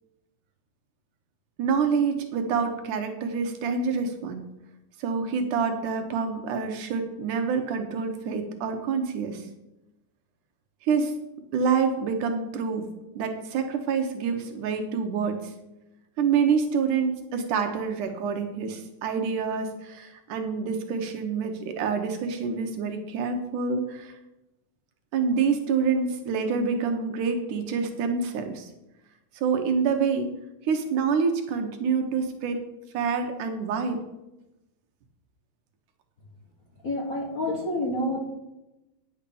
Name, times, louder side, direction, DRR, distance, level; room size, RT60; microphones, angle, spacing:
voice 1, 1.6-4.5 5.0-9.5 10.8-11.1 11.5-12.9 13.2-15.5 16.2-24.2 25.1-28.7 29.3-30.3 30.6-32.6 32.9-34.0, right 5 dB, 80° right, 5 dB, 2.5 m, -27 dB
voice 2, 36.8-38.2, left 1 dB, 45° left, 0 dB, 1.2 m, -28 dB
10.0 x 6.5 x 6.9 m, 0.93 s
omnidirectional pair, 3.6 m